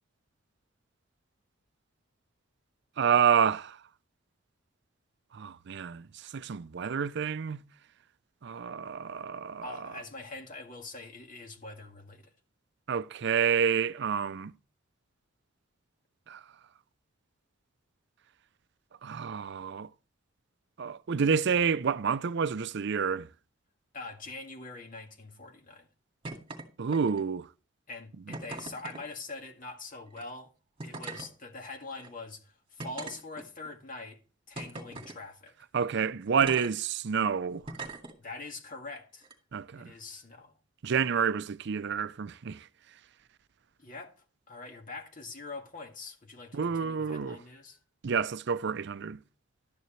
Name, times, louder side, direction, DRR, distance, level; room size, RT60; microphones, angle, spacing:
voice 1, 3.0-3.8 5.3-7.6 8.4-9.8 12.9-14.5 16.3-16.4 19.0-19.9 20.8-23.3 26.8-27.5 35.7-37.6 39.5-39.9 40.8-42.6 46.5-47.4 48.0-49.2, right 6 dB, 60° right, 0.5 m, -29 dB
voice 2, 9.6-12.3 23.9-25.9 27.9-30.5 30.8-34.2 34.5-35.5 38.2-39.3 39.7-40.5 43.8-44.1 44.5-47.8, left 3 dB, 45° left, 1.9 m, -44 dB
sound 1, 26.2-26.6 26.9-27.4 28.3-29.0 30.1-30.2 30.8-31.3 32.0-32.1 32.8-33.7 34.6-35.2 36.4-36.7 37.7-38.1 39.2-39.3, right 3 dB, 30° right, 2.1 m, -40 dB
12.0 x 9.4 x 3.2 m
head